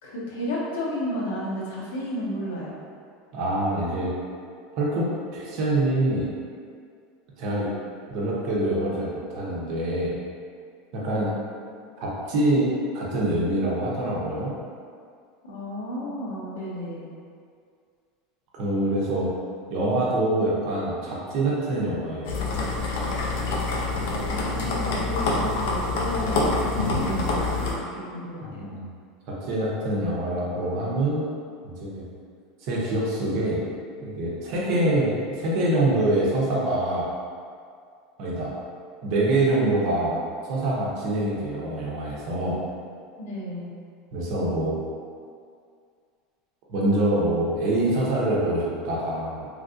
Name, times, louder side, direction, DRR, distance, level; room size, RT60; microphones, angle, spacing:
voice 1, 0.0-2.8 15.4-17.1 24.1-28.7 43.2-43.8, left 1 dB, 90° left, -5 dB, 0.8 m, -32 dB
voice 2, 3.3-4.1 4.8-6.3 7.4-7.7 8.1-10.1 10.9-11.3 12.0-14.5 18.5-19.3 19.7-22.4 28.6-28.9 29.5-31.3 31.6-32.1 32.6-33.6 34.0-37.1 38.2-38.5 39.0-42.6 44.1-44.7 46.7-49.5, right 1 dB, 45° right, -5 dB, 0.6 m, -25 dB
sound 1, 22.2-27.7, left 3 dB, 65° left, 0.5 m, -26 dB
3.1 x 2.5 x 2.5 m, 2.2 s
supercardioid pair, 170°, 0 cm